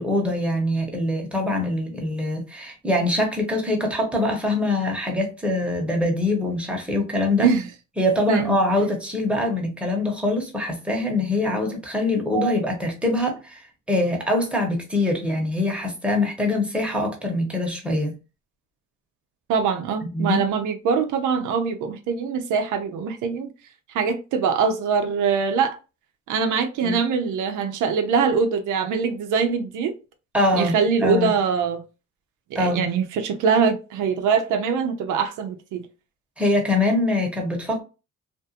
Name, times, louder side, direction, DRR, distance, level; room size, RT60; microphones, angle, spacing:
voice 1, 0.0-7.5 8.0-18.1 20.0-20.4 26.8-27.0 30.3-31.3 32.5-32.8 36.4-37.8, left 1 dB, 5° right, 1.0 m, -23 dB
voice 2, 19.5-23.5 23.9-25.8 26.3-30.0 30.5-31.8 32.5-35.8, right 6 dB, 85° right, 0.6 m, -23 dB
2.5 x 2.3 x 2.7 m
cardioid pair, 90°, 30 cm